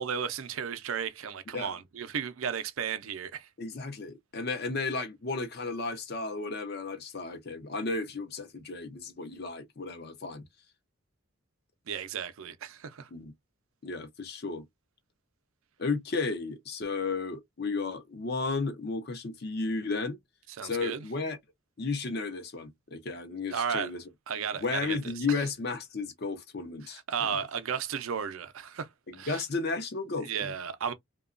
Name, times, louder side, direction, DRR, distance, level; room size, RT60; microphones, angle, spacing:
voice 1, 0.0-3.5 11.9-13.1 20.6-21.0 23.5-23.9 24.3-25.0 26.8-29.4 30.2-30.9, right 7 dB, 80° right, 0.5 m, -34 dB
voice 2, 3.6-10.4 13.1-13.3 13.8-14.6 15.8-20.2 20.6-21.4 21.8-24.0 24.6-27.4 29.1-30.5, left 3 dB, 50° left, 0.6 m, -33 dB
2.9 x 2.2 x 2.4 m
head